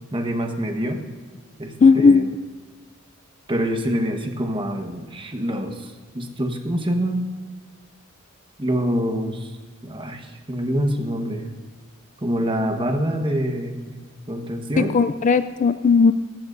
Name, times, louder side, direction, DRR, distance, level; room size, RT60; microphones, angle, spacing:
voice 1, 0.1-1.0 1.6-2.3 3.5-7.2 8.6-9.5 9.8-11.5 12.2-14.0 14.3-15.0, equal, 25° right, 4 dB, 1.2 m, -25 dB
voice 2, 1.8-2.3 14.8-16.1, left 4 dB, 35° left, 12 dB, 0.3 m, -16 dB
18.5 x 15.0 x 2.6 m, 1.4 s
head